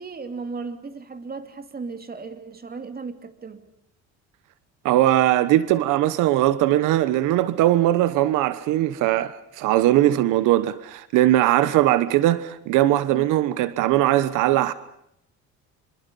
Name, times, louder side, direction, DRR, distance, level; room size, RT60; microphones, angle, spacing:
voice 1, 0.0-3.6 11.6-11.8 13.1-13.3, right 4 dB, 30° right, 3.0 m, -36 dB
voice 2, 4.8-14.7, right 14 dB, 85° right, 1.2 m, -20 dB
26.0 x 26.0 x 5.4 m
cardioid pair, 105°, 30 cm